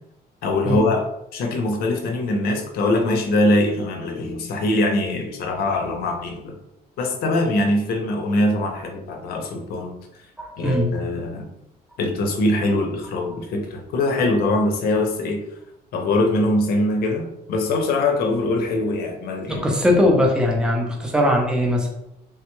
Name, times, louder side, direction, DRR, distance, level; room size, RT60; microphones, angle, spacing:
voice 1, 0.4-1.1 1.3-6.5 7.0-9.9 10.6-11.5 12.0-15.4 15.9-19.6, left 2 dB, 70° left, 3 dB, 0.6 m, -22 dB
voice 2, 10.4-11.0 19.5-21.9, left 1 dB, 5° right, 0 dB, 0.5 m, -20 dB
3.3 x 2.2 x 3.0 m, 0.84 s
cardioid pair, 160°, 16 cm